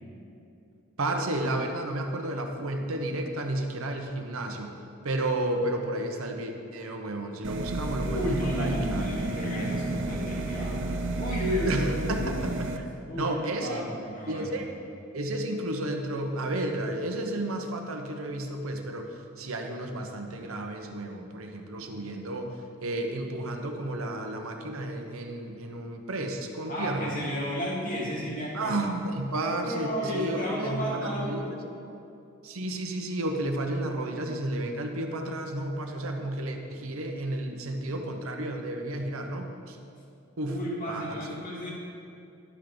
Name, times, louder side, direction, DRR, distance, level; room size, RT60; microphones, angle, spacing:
voice 1, 1.0-4.7 5.0-9.1 11.6-12.5 12.8-12.9 13.2-13.8 14.3-14.7 15.1-22.5 22.8-27.1 28.5-31.6 32.4-39.8 40.4-40.6 40.9-41.3, right 1 dB, 75° right, 3 dB, 0.9 m, -32 dB
sound 1, 7.4-12.8, right 2 dB, 60° right, 0.6 m, -31 dB
voice 2, 8.1-12.5 13.1-14.6 26.7-28.8 29.6-31.7 40.5-41.7, equal, 40° left, -4 dB, 2.2 m, -33 dB
11.5 x 6.0 x 5.1 m, 2.6 s
head